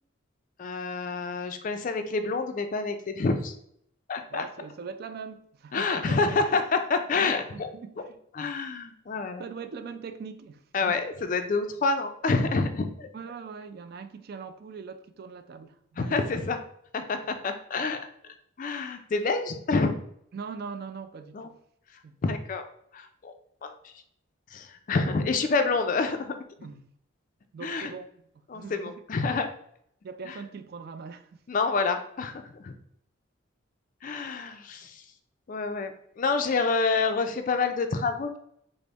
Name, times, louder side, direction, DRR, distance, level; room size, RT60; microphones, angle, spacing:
voice 1, 0.6-3.5 4.1-4.4 5.7-7.7 8.4-9.4 10.7-13.1 16.0-16.6 16.9-19.9 21.3-21.5 22.2-22.6 22.9-23.3 23.6-23.7 24.5-26.3 27.6-27.9 28.5-29.5 31.5-32.7 34.0-35.0 35.5-38.4, left 4 dB, 40° left, 0.3 m, -28 dB
voice 2, 4.3-6.2 6.5-6.6 7.5-8.1 9.4-11.0 13.1-16.3 20.3-21.5 22.0-22.1 26.6-26.9 27.5-28.1 28.5-29.0 30.0-31.4, right 5 dB, 50° right, 0.3 m, -41 dB
3.9 x 2.0 x 3.4 m
head